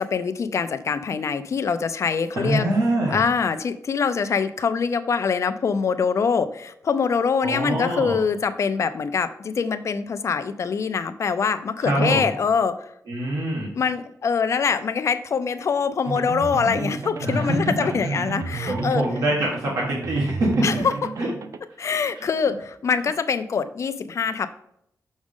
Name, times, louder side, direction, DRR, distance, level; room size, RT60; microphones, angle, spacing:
voice 1, 0.0-2.7 3.1-12.9 13.7-19.0 20.6-20.9 21.8-24.5, left 6 dB, 55° left, 10 dB, 0.5 m, -24 dB
voice 2, 2.3-3.2 7.4-8.2 11.8-12.3 13.1-13.7 17.2-17.7 18.7-20.7 21.2-21.3, right 1 dB, 85° right, -3 dB, 1.6 m, -24 dB
sound 1, 16.0-21.6, right 4 dB, 60° right, 0.5 m, -32 dB
6.2 x 6.2 x 3.7 m, 0.74 s
wide cardioid pair, 170°, 6 cm